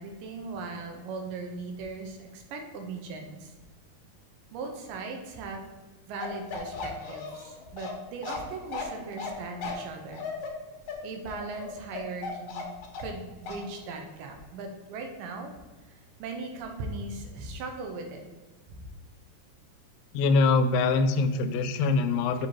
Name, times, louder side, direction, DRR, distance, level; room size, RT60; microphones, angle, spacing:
voice 1, 0.0-3.5 4.5-5.6 6.1-10.3 11.0-12.7 13.0-15.5 15.9-18.3 18.7-18.9, right 3 dB, 80° right, 3 dB, 2.4 m, -38 dB
Bark, 6.2-13.2 13.5-13.6, left 4 dB, 70° left, 1.5 m, -37 dB
voice 2, 20.1-22.5, left 3 dB, 85° left, 9 dB, 2.3 m, -23 dB
7.3 x 2.9 x 4.5 m, 1.2 s
omnidirectional pair, 4.0 m